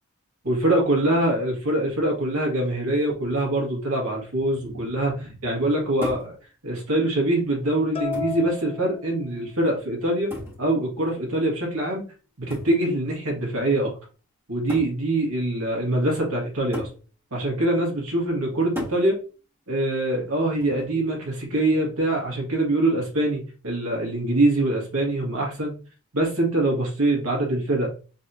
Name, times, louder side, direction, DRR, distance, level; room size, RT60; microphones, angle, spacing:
voice 1, 0.4-6.4 6.6-12.1 12.4-13.9 14.5-16.9 17.3-19.2 19.7-25.7 26.1-27.9, right 1 dB, 85° right, -2 dB, 2.0 m, -24 dB
sound 1, 6.0-6.4 7.4-7.5 8.1-8.5 10.3-10.7 12.5-12.8 13.8-13.9 14.7-15.0 16.7-17.0 18.7-19.1 20.6-21.0, left 1 dB, 10° right, 1.9 m, -35 dB
sound 2, 7.9-9.7, left 5 dB, 25° left, 0.5 m, -33 dB
4.1 x 3.5 x 2.8 m, 0.36 s
head